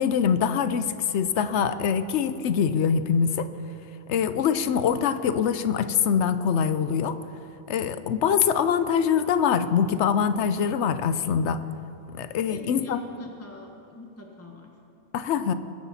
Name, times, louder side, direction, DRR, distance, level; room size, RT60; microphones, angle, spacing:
voice 1, 0.0-3.5 4.1-7.2 7.7-11.6 12.1-13.0 15.1-15.5, left 7 dB, 85° left, 12 dB, 1.0 m, -24 dB
voice 2, 12.5-14.7, left 1 dB, 15° left, 0 dB, 1.3 m, -42 dB
22.0 x 10.0 x 4.2 m, 2.7 s
omnidirectional pair, 1.1 m